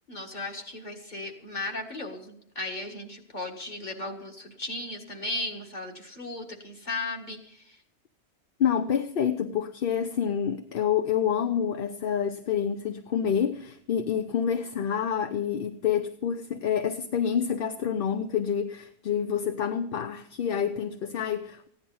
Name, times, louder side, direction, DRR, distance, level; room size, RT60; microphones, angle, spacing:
voice 1, 0.1-7.6, left 2 dB, 40° left, 2.0 m, -36 dB
voice 2, 8.6-21.7, left 8 dB, 55° left, 0.8 m, -28 dB
15.5 x 10.0 x 5.4 m
omnidirectional pair, 1.2 m